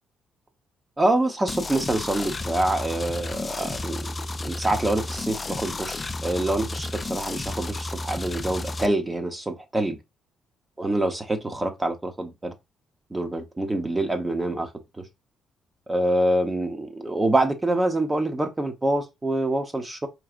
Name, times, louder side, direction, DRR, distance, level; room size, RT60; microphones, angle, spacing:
voice 1, 1.0-4.0 4.4-10.0 10.8-12.5 13.1-14.7 15.0-15.1 15.9-20.1, right 1 dB, 20° right, 1.0 m, -26 dB
sound 1, 1.5-8.9, left 2 dB, 25° left, 0.4 m, -32 dB
4.8 x 3.1 x 2.5 m
cardioid pair, 90°, 0 cm